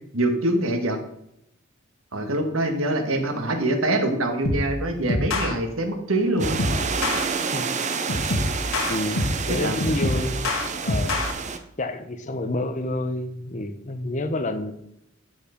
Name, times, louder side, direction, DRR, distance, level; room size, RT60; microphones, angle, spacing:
voice 1, 0.1-1.0 2.1-6.6 9.5-9.8, right 1 dB, 90° right, 5 dB, 1.6 m, -24 dB
sound 1, 4.4-4.7 5.1-5.5 6.4-7.2 8.1-9.5 9.8-11.3, left 2 dB, 90° left, 1.6 m, -25 dB
sound 2, 6.4-11.6, right 5 dB, 35° right, 0.8 m, -29 dB
voice 2, 8.8-10.4 10.8-11.2 11.8-14.7, left 1 dB, 35° left, 8 dB, 0.9 m, -29 dB
12.5 x 4.7 x 5.1 m, 0.78 s
head